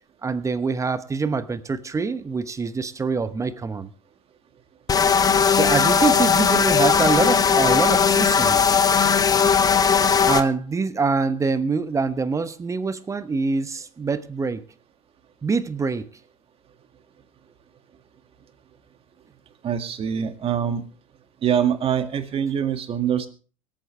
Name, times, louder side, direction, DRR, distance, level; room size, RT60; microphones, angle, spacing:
voice 1, 0.2-3.9 5.5-8.8 10.2-14.6 15.4-16.1, right 4 dB, 15° right, 14 dB, 1.0 m, -25 dB
sound 1, 4.9-10.4, left 6 dB, 20° left, 1.0 m, -18 dB
voice 2, 19.6-20.8 21.4-23.3, right 8 dB, 35° right, 8 dB, 2.0 m, -24 dB
24.5 x 8.9 x 3.3 m, 0.38 s
hypercardioid pair, 85°, 17 cm